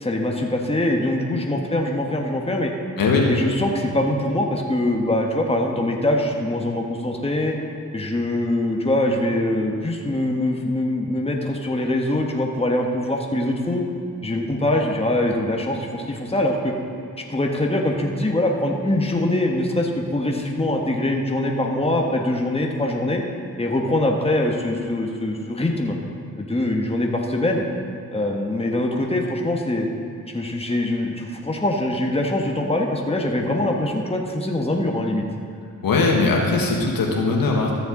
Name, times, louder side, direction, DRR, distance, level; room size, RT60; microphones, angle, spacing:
voice 1, 0.0-2.7 3.3-7.5 7.9-13.8 14.2-16.7 17.3-23.2 23.6-26.0 26.4-27.6 28.1-29.9 30.3-35.2, left 1 dB, 15° left, 1 dB, 1.4 m, -23 dB
voice 2, 3.0-3.3 35.8-37.7, left 3 dB, 70° left, 0 dB, 1.6 m, -20 dB
13.5 x 6.8 x 3.9 m, 2.5 s
supercardioid pair, 45°, 36 cm